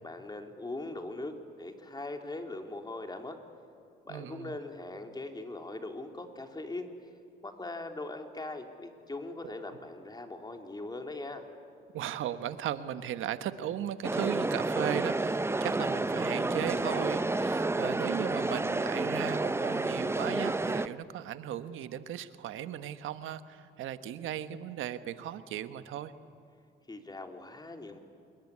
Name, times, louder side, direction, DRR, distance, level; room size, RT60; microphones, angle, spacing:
voice 1, 0.0-3.4 4.0-6.9 7.4-11.4 26.9-28.0, left 2 dB, 20° left, 4 dB, 3.3 m, -40 dB
voice 2, 4.1-4.6 9.4-9.5 11.9-26.1, right 10 dB, 85° right, 11 dB, 1.3 m, -37 dB
sound 1, 14.0-20.9, right 2 dB, 10° right, 0.8 m, -30 dB
28.0 x 21.5 x 9.8 m, 2.6 s
cardioid pair, 90°, 20 cm